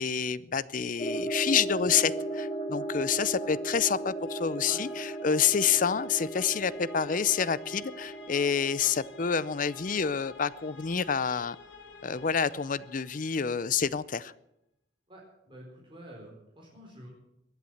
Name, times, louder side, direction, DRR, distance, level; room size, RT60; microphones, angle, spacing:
voice 1, 0.0-11.6 12.0-14.3, left 7 dB, 45° left, 18 dB, 0.6 m, -28 dB
sound 1, 0.9-13.7, left 5 dB, 90° left, 1.9 m, -51 dB
sound 2, 1.0-10.5, right 2 dB, 30° left, 1.1 m, -37 dB
voice 2, 15.1-17.1, right 1 dB, 25° right, -3 dB, 4.3 m, -49 dB
22.0 x 8.2 x 7.9 m, 0.84 s
head